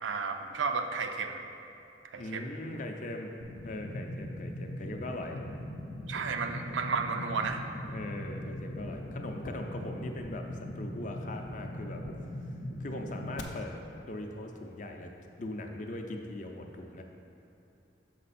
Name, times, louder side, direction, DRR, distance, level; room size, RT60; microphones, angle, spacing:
voice 1, 0.0-1.4 2.1-2.4 6.1-7.6, right 5 dB, 80° right, 5 dB, 0.5 m, -32 dB
voice 2, 2.2-3.3 3.6-5.4 7.9-10.4 10.7-12.0 12.8-13.7 14.1-15.1 15.4-17.0, left 1 dB, 40° left, 3 dB, 0.5 m, -40 dB
sound 1, 3.4-13.4, left 1 dB, 85° left, 0.6 m, -40 dB
6.5 x 5.2 x 4.2 m, 2.8 s
head